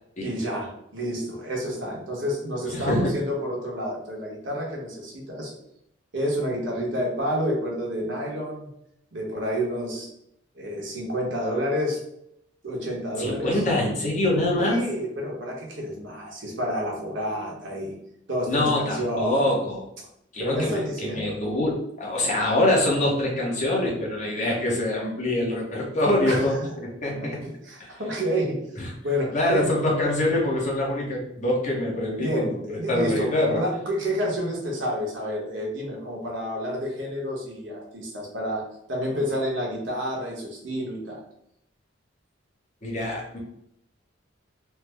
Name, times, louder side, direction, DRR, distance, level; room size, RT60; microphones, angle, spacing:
voice 1, 0.2-5.5 6.1-8.7 9.1-10.1 10.5-12.0 12.6-13.6 14.6-17.9 18.3-19.6 20.4-21.3 26.3-26.7 27.1-28.6 29.0-29.7 30.0-30.1 32.2-38.6 38.9-41.2, equal, 75° right, -2 dB, 1.0 m, -29 dB
voice 2, 2.6-3.1 13.2-14.8 18.5-19.8 20.3-27.4 27.8-27.9 28.8-28.9 29.3-33.6 42.8-43.4, left 1 dB, 40° left, -3 dB, 0.9 m, -25 dB
3.3 x 2.0 x 3.3 m, 0.76 s
head